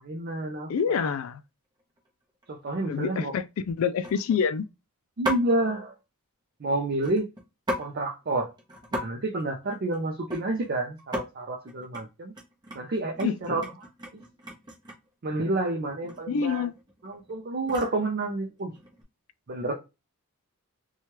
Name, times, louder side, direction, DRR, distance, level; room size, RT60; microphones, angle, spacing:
voice 1, 0.0-1.1 2.5-3.3 5.2-6.0 6.6-7.3 7.8-8.5 8.9-12.3 12.7-13.6 15.2-16.7 17.0-18.7 19.5-19.7, right 2 dB, 45° right, 0.5 m, -29 dB
voice 2, 0.7-1.4 2.9-4.7 13.2-13.7 16.3-16.7, left 6 dB, 65° left, 0.3 m, -27 dB
sound 1, 1.2-1.3 1.8-2.1 2.4-2.5 2.9-3.2 4.0-4.5 5.2-5.6 6.9-7.9 8.2-8.3 8.6-9.1 9.3-10.7 11.0-11.3 11.7-12.0 12.3-15.1 16.0-16.2 16.5-18.0 18.7-19.0, equal, 20° right, 0.8 m, -36 dB
2.9 x 2.3 x 3.0 m
head